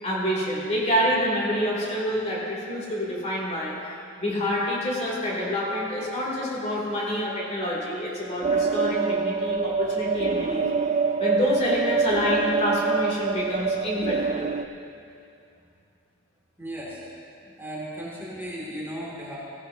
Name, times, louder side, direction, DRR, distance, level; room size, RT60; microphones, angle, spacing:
voice 1, 0.0-3.8 4.2-10.7 11.2-14.5, equal, 35° left, -4 dB, 3.0 m, -27 dB
sound 1, 8.4-14.7, right 5 dB, 35° right, 0.3 m, -25 dB
voice 2, 16.6-17.0 17.6-19.4, equal, 10° right, -7 dB, 2.5 m, -35 dB
17.5 x 16.5 x 2.9 m, 2.6 s
head